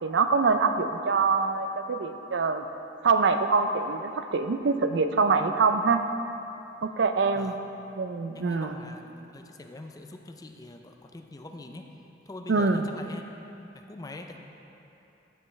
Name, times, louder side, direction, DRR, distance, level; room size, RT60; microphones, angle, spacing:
voice 1, 0.0-2.6 3.0-6.0 6.8-7.5 8.0-8.7 12.5-12.8, right 4 dB, 70° right, 8 dB, 0.5 m, -24 dB
voice 2, 8.3-11.9 12.3-13.2 13.6-14.4, left 2 dB, 20° left, 4 dB, 0.4 m, -43 dB
15.0 x 5.5 x 3.2 m, 2.9 s
head